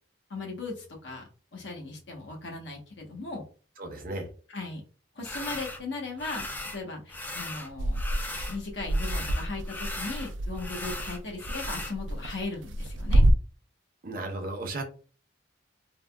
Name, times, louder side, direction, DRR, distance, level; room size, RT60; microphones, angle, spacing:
voice 1, 0.3-1.2 1.5-3.4 4.5-4.8 5.1-6.4 6.7-8.0 8.5-13.2, left 3 dB, 80° left, 1 dB, 1.0 m, -37 dB
voice 2, 3.8-4.3 14.0-14.8, right 2 dB, 50° right, 5 dB, 0.6 m, -34 dB
sound 1, 5.2-5.8 6.2-6.8 7.1-8.6 8.9-11.9, left 2 dB, 10° left, 0.3 m, -38 dB
sound 2, 7.8-13.3, right 1 dB, 85° right, 0.4 m, -27 dB
3.4 x 2.1 x 2.2 m, 0.38 s
head